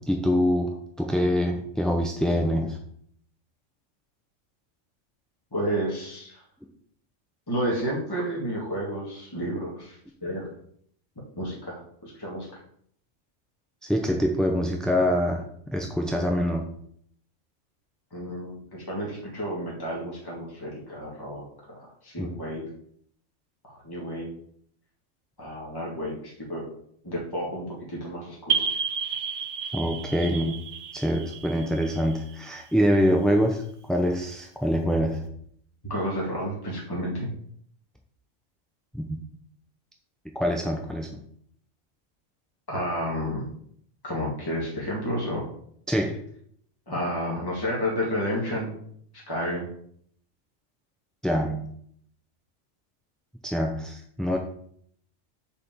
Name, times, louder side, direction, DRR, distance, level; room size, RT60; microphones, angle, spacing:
voice 1, 0.1-2.8 13.8-16.7 22.2-22.3 29.7-30.5 30.9-33.6 33.9-35.2 38.9-39.2 40.3-41.2 45.9-46.2 51.2-51.7 53.4-54.4, equal, ahead, 2 dB, 0.5 m, -25 dB
voice 2, 5.5-6.4 7.5-10.5 11.4-12.6 18.1-22.6 23.6-24.3 25.4-26.6 27.0-28.7 35.9-37.3 42.7-43.5 44.0-45.5 46.9-48.7 49.3-49.7, equal, 15° left, -4 dB, 2.0 m, -31 dB
sound 1, 28.5-32.9, right 6 dB, 65° right, 1.0 m, -31 dB
6.9 x 5.0 x 7.0 m, 0.64 s
omnidirectional pair, 1.3 m